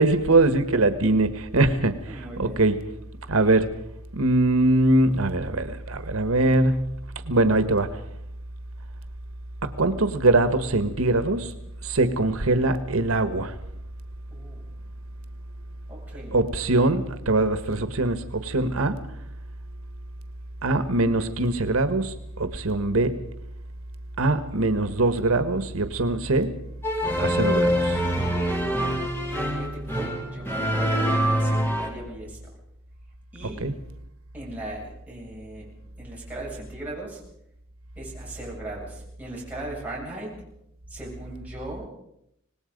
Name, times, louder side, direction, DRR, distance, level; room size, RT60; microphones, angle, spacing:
voice 1, 0.0-2.8 3.3-3.7 4.1-6.9 7.2-7.9 9.6-11.5 11.8-13.5 16.3-19.0 20.6-23.2 24.2-26.5 27.2-28.0 33.6-33.7, right 2 dB, 85° right, 11 dB, 1.4 m, -22 dB
voice 2, 2.1-2.6 14.3-14.6 15.9-16.4 29.5-32.4 33.3-33.6 34.3-35.7 36.0-37.2 38.0-40.3 40.9-41.9, right 1 dB, 10° right, -4 dB, 7.9 m, -38 dB
sound 1, 26.8-31.9, equal, 10° left, 3.7 m, -25 dB
25.5 x 19.5 x 5.3 m, 0.77 s
head